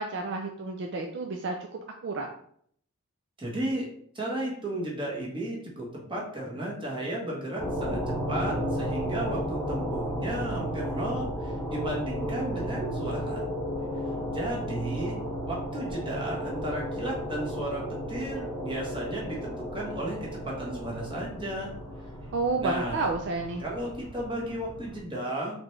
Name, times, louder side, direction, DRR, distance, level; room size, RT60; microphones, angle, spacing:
voice 1, 0.0-2.3 22.3-23.6, right 3 dB, 55° right, 2 dB, 0.4 m, -31 dB
voice 2, 3.4-3.8 4.1-8.0 8.3-13.4 14.3-15.2 15.5-21.7 22.6-23.1 23.6-25.6, right 1 dB, 25° right, -4 dB, 1.3 m, -34 dB
sound 1, 7.6-25.0, equal, ahead, 1.3 m, -34 dB
4.1 x 3.1 x 3.3 m, 0.64 s
head